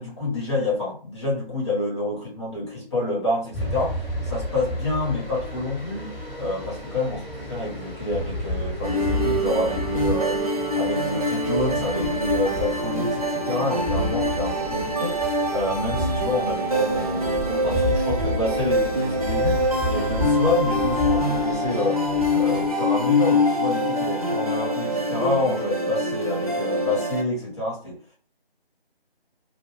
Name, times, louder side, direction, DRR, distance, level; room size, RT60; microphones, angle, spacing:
voice 1, 0.0-15.2 15.5-22.0 22.3-28.0, left 2 dB, 30° left, -5 dB, 1.1 m, -28 dB
sound 1, 3.5-22.7, left 1 dB, ahead, 1.1 m, -32 dB
sound 2, 8.8-27.2, left 1 dB, 40° right, 0.4 m, -24 dB
2.5 x 2.3 x 3.1 m, 0.41 s
figure-of-eight pair, 160°, 31 cm